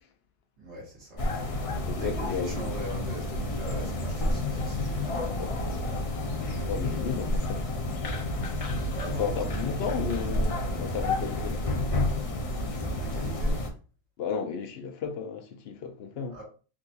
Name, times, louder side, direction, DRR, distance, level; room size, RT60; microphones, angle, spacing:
voice 1, 0.6-1.2 1.9-6.1 8.9-9.6 9.9-10.2 12.2-12.4 12.7-13.6 16.3-16.4, right 2 dB, 80° right, 1.7 m, -42 dB
sound 1, 1.2-13.7, left 1 dB, 50° left, 0.4 m, -30 dB
voice 2, 1.9-2.5 6.6-7.6 9.2-11.6 14.2-16.4, left 6 dB, 65° left, 0.8 m, -33 dB
3.6 x 2.3 x 2.6 m
omnidirectional pair, 1.2 m